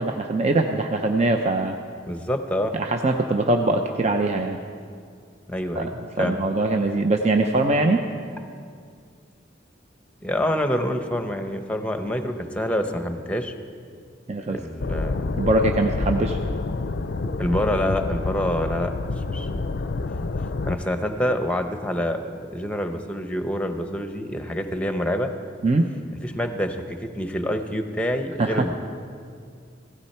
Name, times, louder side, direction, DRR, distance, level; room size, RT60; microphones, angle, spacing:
voice 1, 0.0-1.8 2.7-4.6 5.8-5.9 6.2-8.0 14.3-14.6 15.4-16.4 25.6-25.9 28.4-28.7, right 2 dB, 35° right, 4 dB, 0.6 m, -22 dB
voice 2, 2.1-2.7 5.5-5.9 6.2-6.3 10.2-13.5 14.5-15.3 17.4-18.9 19.3-19.5 20.6-25.3 26.2-28.7, equal, 5° left, 6 dB, 0.9 m, -26 dB
sound 1, 14.8-20.8, left 3 dB, 60° left, 0.5 m, -28 dB
16.0 x 15.5 x 4.4 m, 2.2 s
head